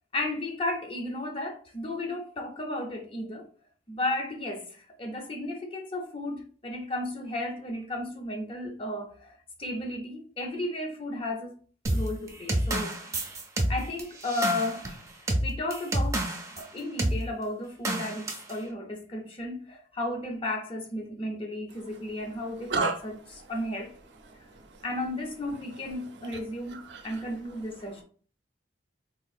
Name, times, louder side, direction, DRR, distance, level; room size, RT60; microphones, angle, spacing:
voice 1, 0.1-3.5 3.9-11.6 11.9-13.0 13.7-15.0 15.4-16.3 16.6-23.2 23.5-23.9 24.8-28.0, left 1 dB, 30° left, 0.6 m, -34 dB
sound 1, 11.9-16.6 17.0-17.2 17.9-18.5, right 1 dB, 15° right, 0.5 m, -29 dB
voice 2, 24.3-24.8 26.7-27.2, right 4 dB, 65° right, 0.6 m, -32 dB
3.7 x 2.5 x 2.4 m
head